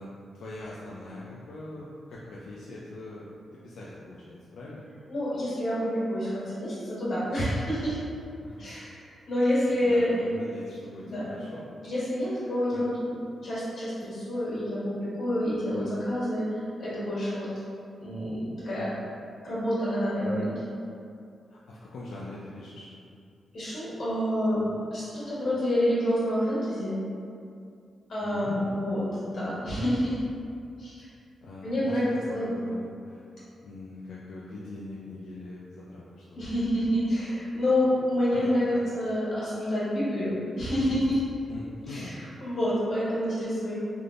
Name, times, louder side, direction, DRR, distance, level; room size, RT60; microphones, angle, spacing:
voice 1, 0.0-3.3 3.5-4.8 8.4-8.7 9.7-11.7 12.3-12.8 18.8-19.1 21.5-22.9 28.2-28.8 31.4-33.2 33.6-36.5 38.3-38.8 41.5-42.1, left 2 dB, 90° left, -6 dB, 0.3 m, -42 dB
voice 2, 5.1-8.0 8.6-10.1 11.0-11.2 11.8-13.2 13.4-17.5 18.0-18.9 19.4-20.6 23.5-27.0 28.1-30.2 30.8-31.0 31.6-32.5 36.3-41.2 41.9-43.8, equal, 60° left, -11 dB, 1.5 m, -28 dB
3.4 x 2.5 x 2.4 m, 2.5 s
wide cardioid pair, 130°, 0 cm